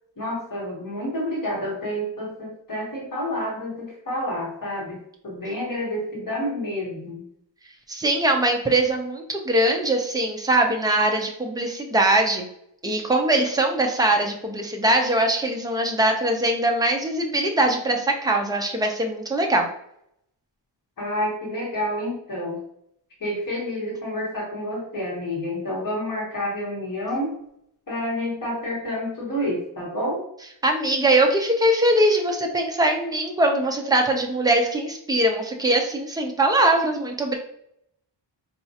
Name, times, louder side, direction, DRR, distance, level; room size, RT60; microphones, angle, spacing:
voice 1, 0.2-7.2 21.0-22.6 23.2-27.3 27.9-30.2, left 1 dB, 45° left, -5 dB, 1.1 m, -29 dB
voice 2, 7.9-12.5 12.8-19.7 30.6-37.4, right 1 dB, 10° right, 2 dB, 0.3 m, -21 dB
4.1 x 2.3 x 2.7 m, 0.72 s
wide cardioid pair, 175°, 45 cm